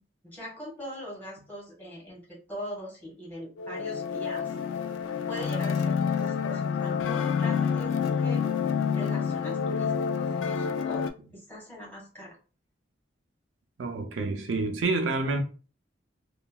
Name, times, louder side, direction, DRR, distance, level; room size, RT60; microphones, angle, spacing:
voice 1, 0.2-4.5 5.3-8.4 8.9-11.1 11.3-12.4, equal, 10° left, 1.4 m, -41 dB
sound 1, 3.6-11.1, left 6 dB, 80° left, 0.3 m, -28 dB
voice 2, 13.8-15.4, right 3 dB, 75° right, 0.5 m, -28 dB
2.8 x 2.3 x 2.2 m
head